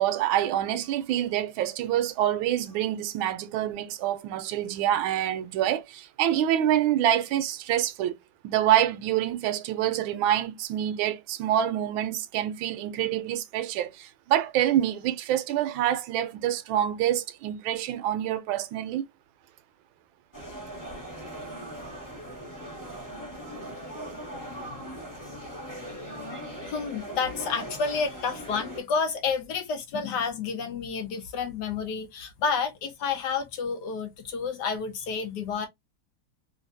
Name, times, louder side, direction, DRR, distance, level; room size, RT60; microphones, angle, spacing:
voice 1, 0.0-8.1 8.4-19.1, right 11 dB, 75° right, 1.3 m, -26 dB
sound 1, 20.3-28.8, right 1 dB, 15° left, 0.8 m, -39 dB
voice 2, 26.7-35.7, left 5 dB, 65° left, 1.1 m, -30 dB
3.2 x 2.6 x 2.5 m
omnidirectional pair, 2.3 m